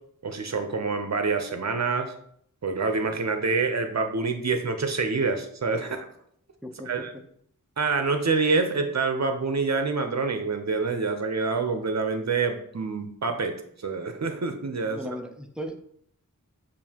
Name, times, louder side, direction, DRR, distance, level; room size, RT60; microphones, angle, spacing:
voice 1, 0.2-2.1 2.6-6.1 6.9-7.1 7.8-13.6 13.8-15.2, right 4 dB, 50° right, 7 dB, 0.6 m, -26 dB
voice 2, 6.6-7.2 14.9-15.8, equal, 5° right, 5 dB, 0.5 m, -37 dB
6.8 x 2.6 x 2.8 m, 0.66 s
wide cardioid pair, 50°, 34 cm